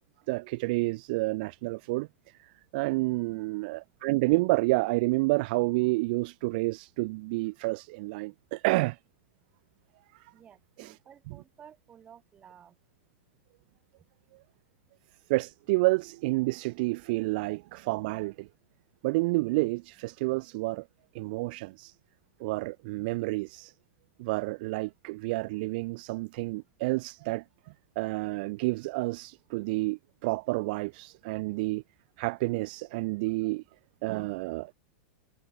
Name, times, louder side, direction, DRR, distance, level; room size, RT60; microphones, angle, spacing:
voice 1, 0.3-2.1 2.4-9.0 10.1-10.3 10.8-11.0 11.3-11.4 15.3-18.5 19.0-20.9 21.1-21.9 22.4-23.7 24.2-27.4 28.0-31.8 32.2-33.6 34.0-34.7, right 23 dB, 45° right, 0.4 m, -29 dB
voice 2, 10.3-12.8, right 8 dB, 20° right, 2.5 m, -54 dB
supercardioid pair, 155°, 7 cm